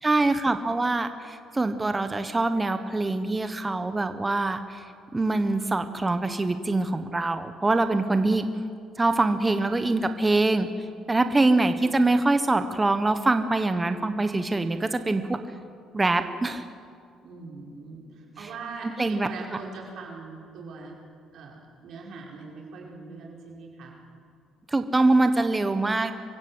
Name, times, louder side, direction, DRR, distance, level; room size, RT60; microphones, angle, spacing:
voice 1, 0.0-4.8 5.1-8.4 9.0-10.7 11.1-15.4 15.9-16.6 19.0-19.3 24.7-26.1, right 2 dB, 20° right, 9 dB, 1.2 m, -24 dB
voice 2, 17.2-21.0 21.3-24.0, right 4 dB, 65° right, -2 dB, 5.6 m, -41 dB
25.0 x 15.5 x 8.1 m, 2.3 s
cardioid pair, 90°, 0 cm